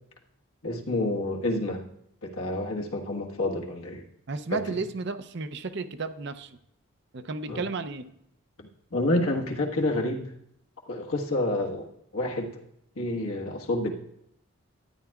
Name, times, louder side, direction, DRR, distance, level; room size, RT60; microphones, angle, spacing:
voice 1, 0.6-1.8 2.2-4.0 4.5-4.8 7.5-7.6 8.9-10.3 10.9-11.9 12.1-12.6 12.9-13.9, left 1 dB, 80° left, 0 dB, 1.4 m, -28 dB
voice 2, 4.3-6.5 7.1-8.1, right 3 dB, 50° right, 10 dB, 0.5 m, -33 dB
13.0 x 9.6 x 2.3 m, 0.75 s
head